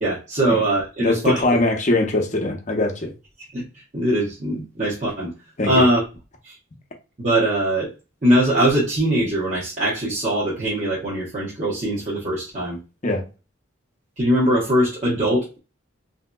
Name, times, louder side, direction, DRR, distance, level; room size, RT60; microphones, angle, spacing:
voice 1, 0.0-1.4 3.5-5.3 5.6-6.0 6.4-6.6 7.2-7.9 8.2-12.8 14.2-15.6, right 1 dB, 40° right, 0.8 m, -21 dB
voice 2, 1.0-3.1 5.6-5.8 13.0-13.2, left 2 dB, 35° left, 0.7 m, -21 dB
3.5 x 2.7 x 2.2 m
head